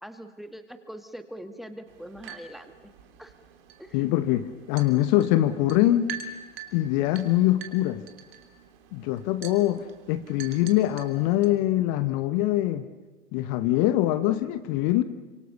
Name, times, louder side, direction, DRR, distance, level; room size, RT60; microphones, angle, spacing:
voice 1, 0.0-2.7 3.2-3.3 3.8-4.2, equal, ahead, 8 dB, 1.8 m, -42 dB
sound 1, 1.9-11.6, right 7 dB, 55° right, 3.3 m, -45 dB
voice 2, 3.9-6.1 6.7-8.0 8.9-12.9 13.3-15.0, left 14 dB, 40° left, 12 dB, 1.2 m, -23 dB
29.5 x 26.0 x 7.0 m, 1.3 s
figure-of-eight pair, 95°, 35 cm